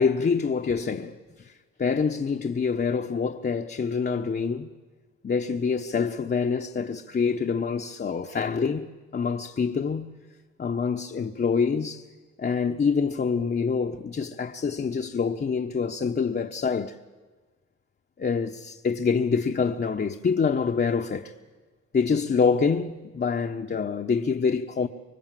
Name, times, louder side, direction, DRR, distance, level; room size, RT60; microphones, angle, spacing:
voice 1, 0.0-1.5 1.8-4.7 5.2-10.1 10.6-12.1 12.4-17.0 18.2-21.3 21.9-24.9, left 5 dB, 35° left, 1.1 m, -26 dB
25.5 x 23.0 x 7.7 m
cardioid pair, 90°, 30 cm